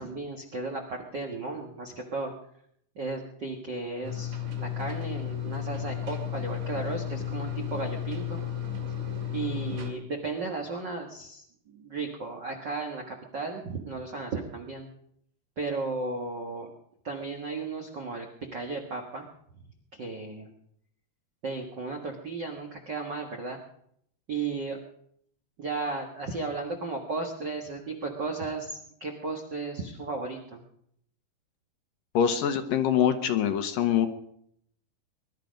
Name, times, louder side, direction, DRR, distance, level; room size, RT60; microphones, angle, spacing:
voice 1, 0.0-2.3 2.9-8.4 9.3-14.9 15.6-16.7 17.0-18.3 18.5-19.3 19.9-20.5 21.4-23.6 24.3-24.8 25.6-30.6, right 3 dB, 75° right, 1 dB, 1.0 m, -35 dB
sound 1, 4.0-9.9, left 9 dB, 50° right, 3.3 m, -33 dB
voice 2, 32.1-34.1, left 9 dB, 70° left, 7 dB, 2.3 m, -24 dB
21.5 x 12.0 x 5.2 m, 0.69 s
omnidirectional pair, 4.6 m